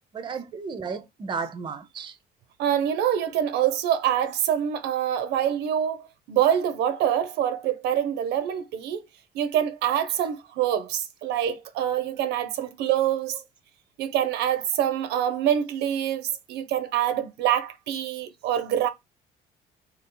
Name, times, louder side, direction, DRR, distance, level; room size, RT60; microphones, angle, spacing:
voice 1, 0.1-2.2 13.3-13.4, right 5 dB, 30° right, 0.5 m, -34 dB
voice 2, 2.6-9.0 9.3-13.4 14.0-18.9, right 10 dB, 80° right, 0.5 m, -25 dB
2.7 x 2.4 x 3.6 m
cardioid pair, 110°, 17 cm